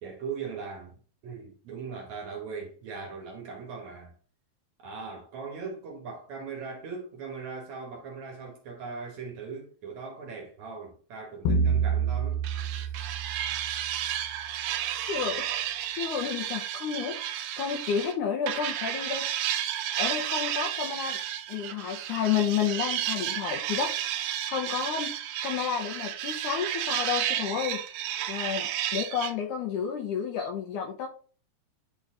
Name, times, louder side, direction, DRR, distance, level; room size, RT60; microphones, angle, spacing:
voice 1, 0.0-1.0 1.2-4.1 4.8-12.4 12.8-12.9 13.5-13.8 14.1-14.2, right 5 dB, 60° right, 2.1 m, -39 dB
sound 1, 11.5-14.2, right 4 dB, 85° left, 3.2 m, -28 dB
sound 2, 12.4-18.1 18.5-29.3, right 11 dB, 85° right, 1.7 m, -32 dB
voice 2, 15.1-19.6 20.0-21.2 21.5-27.8 28.3-31.1, left 7 dB, 70° left, 1.9 m, -31 dB
10.5 x 4.0 x 3.7 m
omnidirectional pair, 4.5 m